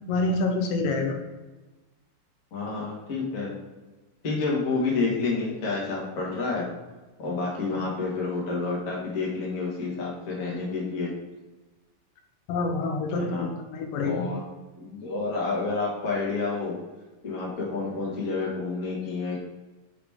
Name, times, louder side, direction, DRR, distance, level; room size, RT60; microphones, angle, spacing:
voice 1, 0.1-1.2 12.5-13.4 13.7-14.3, left 3 dB, 85° left, 4 dB, 2.4 m, -26 dB
voice 2, 2.5-3.6 4.2-6.6 7.2-11.1 13.1-13.5 14.0-14.4 14.8-16.7 17.2-19.4, left 3 dB, 40° left, -3 dB, 1.2 m, -29 dB
5.9 x 5.0 x 3.5 m, 1.2 s
omnidirectional pair, 3.8 m